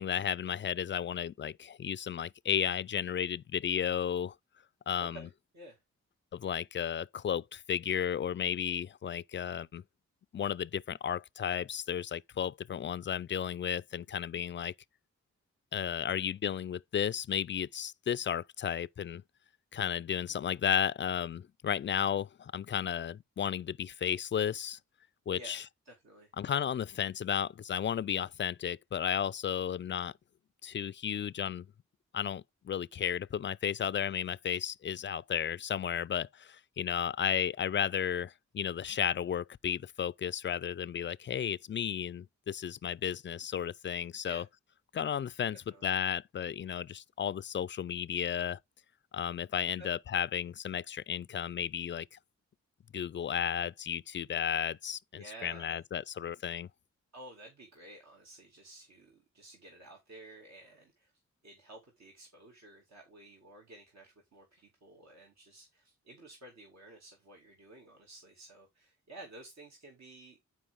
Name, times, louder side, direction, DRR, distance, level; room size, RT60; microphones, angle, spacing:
voice 1, 0.0-4.3 4.9-5.3 6.3-9.8 10.3-14.7 15.7-19.2 19.7-24.8 25.3-25.6 26.4-30.1 30.6-31.7 32.1-44.4 44.9-48.6 49.1-52.2 52.9-56.7, left 8 dB, 40° left, 0.4 m, -33 dB
voice 2, 5.0-5.8 25.3-26.3 44.2-44.5 45.7-45.9 49.8-49.9 55.1-55.8 57.1-61.1 61.4-70.4, right 2 dB, 65° right, 2.4 m, -52 dB
10.0 x 4.7 x 3.6 m
cardioid pair, 70°, 30 cm